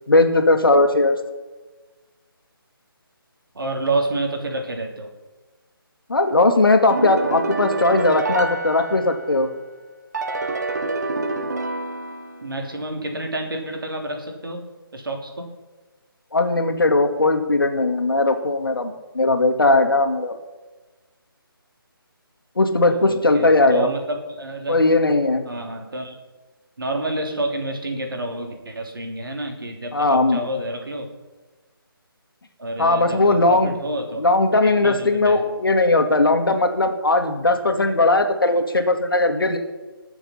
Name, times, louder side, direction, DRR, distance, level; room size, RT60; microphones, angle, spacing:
voice 1, 0.1-1.2 6.1-9.5 16.3-20.4 22.6-23.9 24.7-25.4 29.9-30.4 32.8-33.7 34.2-39.6, left 2 dB, 65° left, 6 dB, 2.1 m, -18 dB
voice 2, 3.5-5.1 12.4-14.7 14.9-15.5 22.8-24.8 25.4-26.2 26.8-31.1 32.6-34.2 34.6-35.5, right 1 dB, 65° right, 3 dB, 3.2 m, -29 dB
sound 1, 6.9-9.5 10.1-12.6, right 2 dB, 45° right, 1.4 m, -27 dB
20.5 x 7.0 x 5.8 m, 1.2 s
figure-of-eight pair, 150°, 12 cm